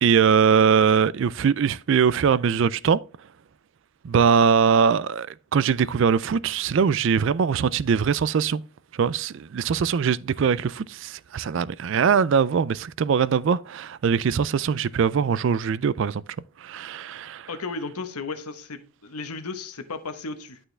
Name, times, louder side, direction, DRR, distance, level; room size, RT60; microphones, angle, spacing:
voice 1, 0.0-3.0 4.0-8.6 8.9-16.2 16.6-17.5, right 6 dB, 55° right, 0.3 m, -21 dB
voice 2, 17.5-20.6, left 4 dB, 85° left, 1.1 m, -34 dB
11.5 x 4.5 x 3.3 m
head